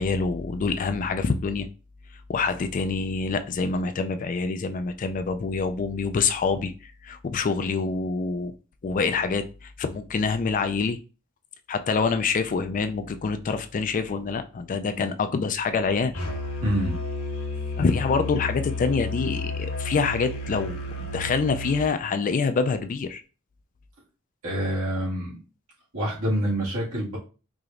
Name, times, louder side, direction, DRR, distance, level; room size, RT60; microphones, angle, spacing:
voice 1, 0.0-1.7 2.3-6.7 7.0-8.5 8.8-11.0 11.7-16.1 17.8-23.2, left 4 dB, 40° left, 9 dB, 0.3 m, -26 dB
Musical instrument, 16.1-21.8, left 2 dB, 90° left, 1.3 m, -32 dB
voice 2, 16.6-17.0 24.4-25.4 25.9-27.2, equal, 80° right, -6 dB, 2.0 m, -26 dB
4.8 x 2.9 x 2.5 m, 0.34 s
head